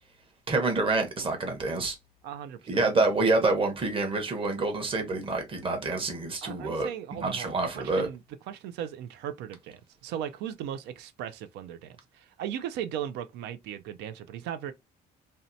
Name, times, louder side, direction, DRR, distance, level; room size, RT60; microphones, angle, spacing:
voice 1, 0.5-1.9 2.7-8.1, right 3 dB, 30° right, 0.9 m, -27 dB
voice 2, 2.2-2.9 6.4-8.2 8.5-14.7, right 10 dB, 85° right, 0.4 m, -37 dB
2.7 x 2.1 x 2.5 m
cardioid pair, 110°, 17 cm